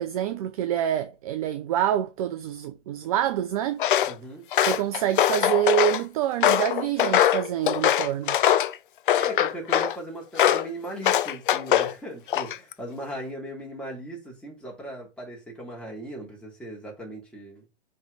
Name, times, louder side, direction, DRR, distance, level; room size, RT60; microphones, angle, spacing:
voice 1, 0.0-3.9 4.7-8.4, right 11 dB, 30° right, 0.5 m, -26 dB
Walk footsteps, 3.8-4.1 4.5-6.0 6.4-8.7 9.1-9.9 10.4-10.7 11.0-11.9 12.3-12.7, left 11 dB, 45° left, 0.6 m, -22 dB
voice 2, 4.0-4.5 9.1-17.6, right 1 dB, 5° left, 3.2 m, -38 dB
5.4 x 5.2 x 4.1 m
figure-of-eight pair, 120°, 35 cm